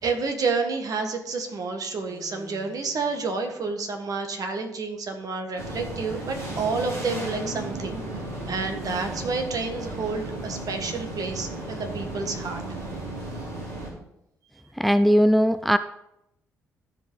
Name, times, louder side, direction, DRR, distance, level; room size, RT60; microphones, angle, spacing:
voice 1, 0.0-8.0 8.5-12.6, right 4 dB, 50° right, 5 dB, 1.8 m, -29 dB
sound 1, 2.1-3.6 6.5-9.1, right 1 dB, 30° right, 2.9 m, -43 dB
sound 2, 5.6-13.9, right 2 dB, 80° right, 2.1 m, -35 dB
voice 2, 14.8-15.8, equal, ahead, 13 dB, 0.4 m, -19 dB
14.5 x 5.3 x 4.0 m, 0.82 s
figure-of-eight pair, 40°, 8 cm